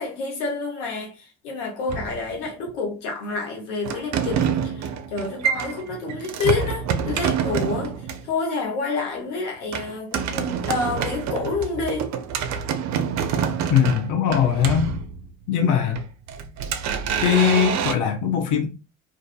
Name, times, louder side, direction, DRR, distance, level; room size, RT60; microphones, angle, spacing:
voice 1, 0.0-12.1, left 4 dB, 85° left, 0.9 m, -28 dB
sound 1, 1.9-2.7 3.8-8.3 9.7-15.5 15.9-17.9, right 7 dB, 50° right, 0.5 m, -27 dB
voice 2, 13.7-14.9 15.5-16.0 17.2-18.7, left 8 dB, 55° left, 0.7 m, -20 dB
2.5 x 2.5 x 2.3 m
hypercardioid pair, 65°, 36 cm